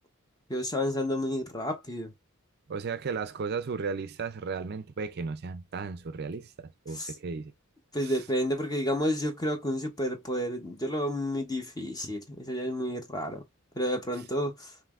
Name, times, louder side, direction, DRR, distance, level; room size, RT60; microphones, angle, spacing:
voice 1, 0.5-2.1 6.9-7.1 7.9-13.4 13.8-14.7, equal, 15° left, 0.9 m, -30 dB
voice 2, 2.7-7.5 8.0-8.1, right 5 dB, 45° right, 0.4 m, -35 dB
5.3 x 3.1 x 2.4 m
head